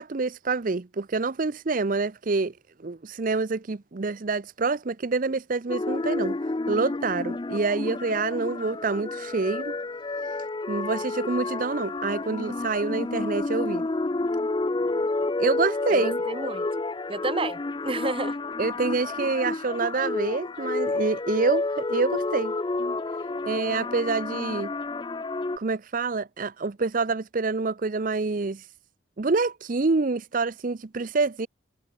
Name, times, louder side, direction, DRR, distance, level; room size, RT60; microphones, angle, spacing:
voice 1, 0.0-2.6 2.8-9.7 10.2-10.3 10.7-13.8 15.4-16.2 18.6-23.0 23.5-24.7 25.6-28.7 29.2-31.5, right 3 dB, 45° right, 0.6 m, -27 dB
sound 1, 5.7-25.6, left 2 dB, 25° left, 0.4 m, -30 dB
voice 2, 15.9-16.7 17.1-18.4, right 2 dB, 25° right, 1.7 m, -30 dB
head